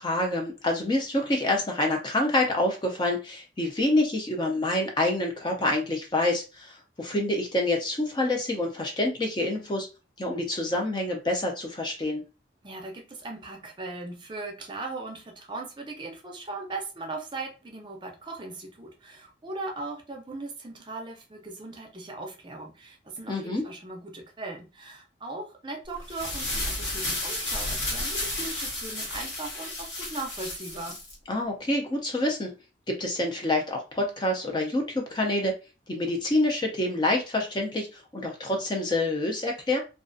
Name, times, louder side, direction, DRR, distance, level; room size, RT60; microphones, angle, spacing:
voice 1, 0.0-9.9 10.2-12.2 23.3-23.6 31.3-32.5 32.9-35.6 35.9-39.8, left 1 dB, 25° left, 1 dB, 0.4 m, -27 dB
voice 2, 12.6-31.0, right 2 dB, 25° right, 2 dB, 0.5 m, -38 dB
sound 1, 26.0-31.1, left 1 dB, 85° left, 1.1 m, -32 dB
2.4 x 2.2 x 2.5 m, 0.30 s
head